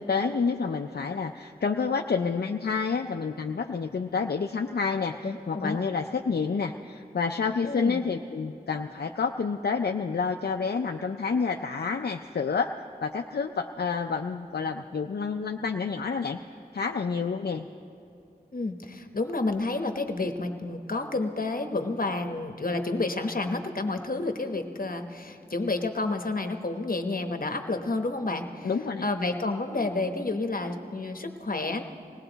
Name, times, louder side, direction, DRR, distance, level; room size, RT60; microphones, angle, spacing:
voice 1, 0.0-12.7 13.0-16.4 16.7-17.7 28.6-29.1, left 5 dB, 80° left, 4 dB, 0.4 m, -29 dB
voice 2, 5.2-5.8 7.6-8.1 18.5-28.7 29.0-31.8, left 2 dB, 60° left, 6 dB, 1.0 m, -30 dB
20.0 x 17.0 x 4.0 m, 2.6 s
wide cardioid pair, 40°, 16 cm